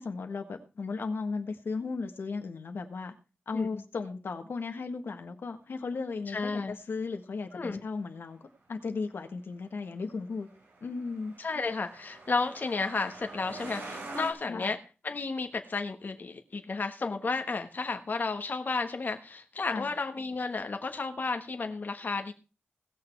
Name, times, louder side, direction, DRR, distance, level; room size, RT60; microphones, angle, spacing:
voice 1, 0.0-3.1 3.5-10.5 10.8-11.3 14.5-14.7 19.7-19.9, left 4 dB, 80° left, 6 dB, 1.5 m, -36 dB
voice 2, 6.3-6.7 7.5-7.8 11.4-14.8 15.0-22.3, left 4 dB, 55° left, 6 dB, 1.3 m, -32 dB
Truck, 10.2-14.3, right 2 dB, 85° right, 4.4 m, -44 dB
18.0 x 6.8 x 4.6 m, 0.33 s
wide cardioid pair, 85°, 4 cm